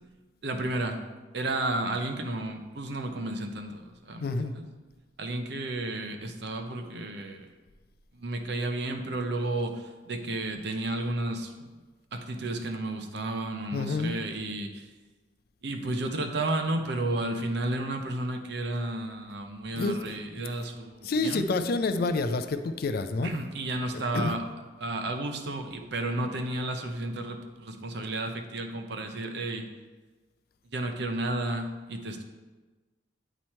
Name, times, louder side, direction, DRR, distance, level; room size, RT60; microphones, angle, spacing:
voice 1, 0.4-1.0 1.3-4.7 5.2-7.4 8.1-11.5 12.1-14.9 15.6-21.4 23.2-24.4 24.8-29.7 30.7-32.2, right 2 dB, 60° right, 5 dB, 0.6 m, -32 dB
voice 2, 4.2-4.5 13.7-14.1 19.7-20.4 21.0-23.3 23.9-24.3, left 3 dB, 55° left, 9 dB, 0.4 m, -29 dB
8.9 x 3.1 x 4.3 m, 1.3 s
head